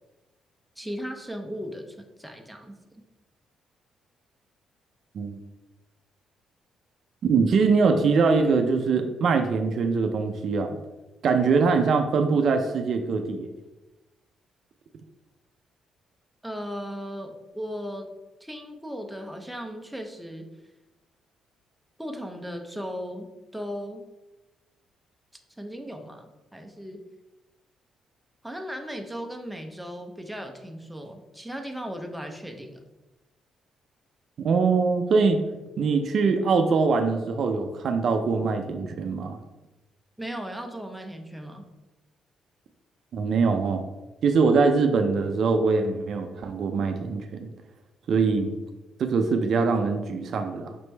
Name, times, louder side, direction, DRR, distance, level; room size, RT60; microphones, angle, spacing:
voice 1, 0.8-2.8 16.4-18.1 18.4-20.5 22.0-23.3 23.5-24.1 25.6-27.0 28.4-32.8 40.2-41.6, equal, 5° right, 3 dB, 0.6 m, -36 dB
voice 2, 7.2-10.8 11.2-13.5 34.4-35.4 35.8-39.4 43.1-43.8 44.2-47.5 48.1-48.6 49.0-50.8, right 4 dB, 60° right, 6 dB, 0.4 m, -23 dB
5.1 x 3.1 x 3.3 m, 1.0 s
cardioid pair, 90°, 0 cm